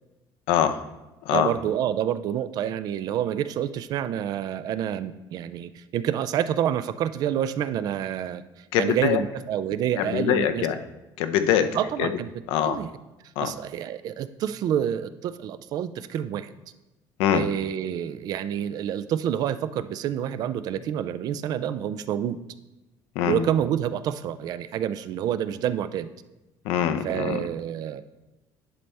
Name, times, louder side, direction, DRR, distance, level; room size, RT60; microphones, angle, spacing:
voice 1, 0.5-0.8 1.2-1.5 8.7-9.2 10.0-10.8 11.2-11.7 12.0-12.1 12.5-12.8 13.4-13.5 17.2-17.5 23.1-23.5 26.6-27.4, left 10 dB, 90° left, 9 dB, 0.6 m, -23 dB
voice 2, 1.3-8.4 8.8-10.7 11.8-12.3 12.6-12.9 13.4-16.5 17.3-22.4 23.2-26.1 27.0-28.0, right 10 dB, 45° right, 13 dB, 0.4 m, -28 dB
11.0 x 4.2 x 3.3 m, 1.0 s
cardioid pair, 170°, 9 cm